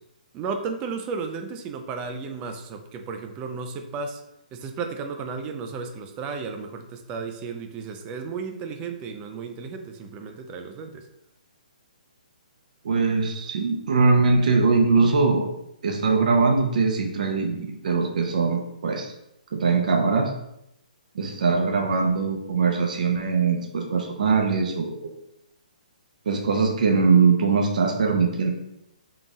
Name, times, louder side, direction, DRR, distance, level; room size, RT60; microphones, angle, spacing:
voice 1, 0.3-4.2 4.5-11.1, right 5 dB, 20° right, 5 dB, 0.4 m, -34 dB
voice 2, 12.8-15.5 15.8-19.1 19.5-20.3 21.1-25.1 26.3-28.5, right 4 dB, 60° right, 1 dB, 0.6 m, -21 dB
3.8 x 2.3 x 3.9 m, 0.82 s
hypercardioid pair, 150°, 5 cm